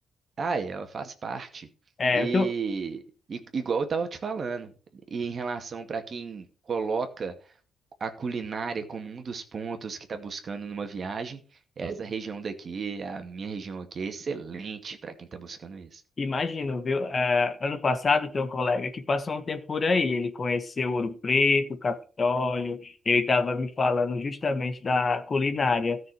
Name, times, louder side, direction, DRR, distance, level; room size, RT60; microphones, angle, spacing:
voice 1, 0.4-1.7 2.1-3.0 3.3-4.7 5.1-7.3 8.0-11.4 11.8-16.0, right 5 dB, 45° right, 6 dB, 2.2 m, -33 dB
voice 2, 2.0-2.5 16.2-26.0, left 3 dB, 35° left, 9 dB, 1.5 m, -26 dB
13.5 x 6.4 x 6.3 m, 0.38 s
cardioid pair, 90°, 0 cm